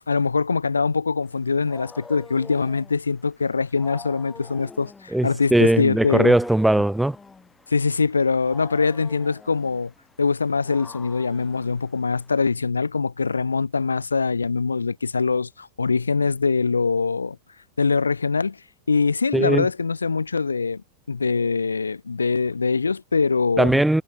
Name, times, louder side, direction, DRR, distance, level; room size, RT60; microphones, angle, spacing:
voice 1, 0.1-6.3 7.7-9.9 10.2-17.4 17.8-18.6 18.9-20.8 21.1-23.8, left 4 dB, 75° left, 0.9 m, -23 dB
Wild animals, 1.3-12.5, left 4 dB, 15° left, 4.6 m, -46 dB
voice 2, 5.1-7.2 19.3-19.7 23.6-24.0, right 1 dB, 5° right, 1.8 m, -19 dB
figure-of-eight pair, 90°, 0 cm